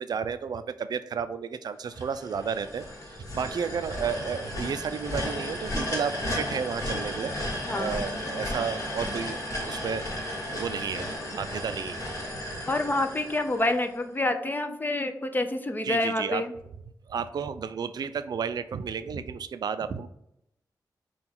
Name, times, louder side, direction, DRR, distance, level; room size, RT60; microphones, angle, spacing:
voice 1, 0.0-7.3 7.7-10.3 10.5-12.1 12.5-12.6 15.8-16.4 17.1-20.1, right 6 dB, 65° right, 11 dB, 0.4 m, -32 dB
sound 1, 1.9-14.0, left 1 dB, 45° left, 1.4 m, -34 dB
voice 2, 7.7-8.0 12.7-16.5, left 2 dB, 25° left, 7 dB, 0.5 m, -28 dB
5.9 x 2.3 x 3.6 m, 0.77 s
cardioid pair, 75°, 7 cm